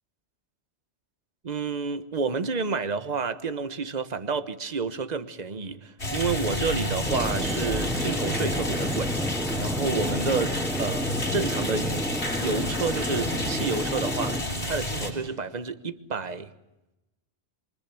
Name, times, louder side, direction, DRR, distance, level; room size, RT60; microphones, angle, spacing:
voice 1, 1.4-9.1 9.6-12.0 12.3-16.5, right 4 dB, 40° right, 1.3 m, -30 dB
sound 1, 6.0-15.1, left 1 dB, 70° left, 6.7 m, -30 dB
sound 2, 7.0-14.4, equal, ahead, 0.8 m, -31 dB
28.0 x 24.5 x 7.8 m
omnidirectional pair, 1.2 m